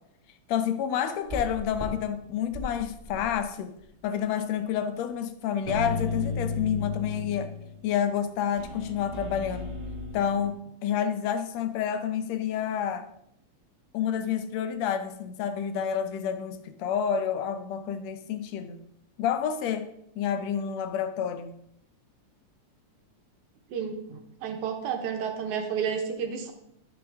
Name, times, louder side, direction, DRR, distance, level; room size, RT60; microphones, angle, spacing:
voice 1, 0.5-3.7 4.0-7.5 7.8-9.7 10.1-13.1 13.9-18.8 19.2-19.9 20.2-21.5, left 8 dB, 70° left, 9 dB, 1.8 m, -29 dB
sound 1, 1.3-1.9 2.4-3.4 3.8-3.9 5.6-7.8 8.6-10.5, left 3 dB, 20° right, 1.4 m, -34 dB
voice 2, 23.7-26.5, right 7 dB, 75° right, 4 dB, 2.6 m, -31 dB
13.5 x 6.2 x 3.6 m, 0.75 s
omnidirectional pair, 3.5 m